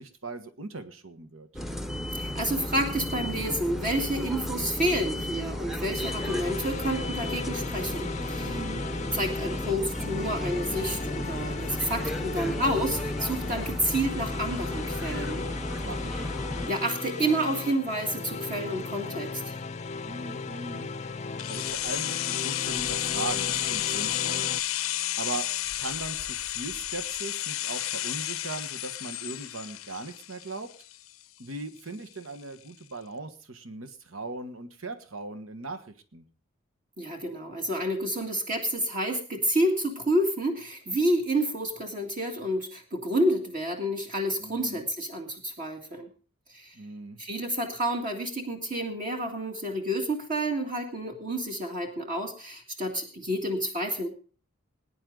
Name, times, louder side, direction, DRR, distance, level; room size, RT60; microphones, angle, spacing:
voice 1, 0.0-1.5 8.4-8.9 15.8-16.3 20.0-20.9 21.5-24.5 25.2-25.5 25.8-30.7 31.4-36.3 44.4-44.9 46.7-47.2, right 3 dB, 75° right, 10 dB, 1.4 m, -39 dB
sound 1, 1.5-16.7, equal, ahead, 0.9 m, -34 dB
voice 2, 2.1-8.6 9.1-15.5 16.7-19.5 37.0-46.1 46.5-46.8 47.2-54.1, right 1 dB, 40° right, 3 dB, 2.0 m, -29 dB
sound 2, 6.0-24.6, left 4 dB, 35° left, 0.6 m, -37 dB
sound 3, 21.4-31.2 31.5-31.6, left 14 dB, 80° left, 0.6 m, -32 dB
20.5 x 9.9 x 3.9 m, 0.39 s
head